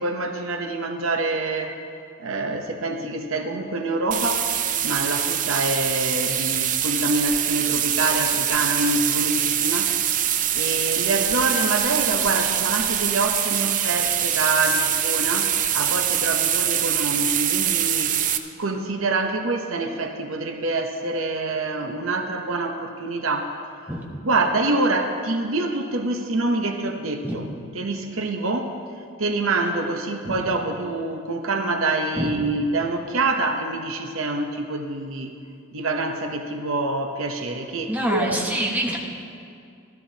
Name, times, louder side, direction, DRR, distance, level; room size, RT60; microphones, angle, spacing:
voice 1, 0.0-1.7 2.2-10.0 10.5-18.2 18.6-23.5 24.2-27.5 27.7-28.7 29.2-35.3 35.7-38.4, right 2 dB, 75° right, 5 dB, 0.8 m, -26 dB
sound 1, 4.1-18.4, right 10 dB, 40° right, 0.4 m, -24 dB
voice 2, 37.9-39.0, right 1 dB, 10° right, -1 dB, 1.0 m, -25 dB
14.0 x 13.0 x 2.8 m, 2.3 s
head